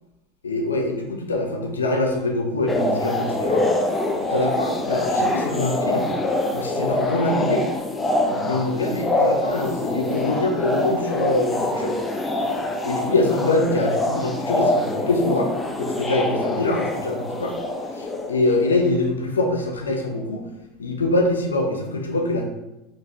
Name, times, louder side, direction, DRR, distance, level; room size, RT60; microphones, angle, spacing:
voice 1, 0.4-3.7 4.3-6.1 6.5-7.6 8.2-11.9 12.8-15.5 15.8-17.5 17.9-20.4 20.8-22.5, left 2 dB, 85° left, 2 dB, 0.6 m, -24 dB
sound 1, 2.7-18.9, left 1 dB, 15° left, 0.5 m, -25 dB
4.1 x 3.0 x 2.7 m, 0.96 s
hypercardioid pair, 80°, 0 cm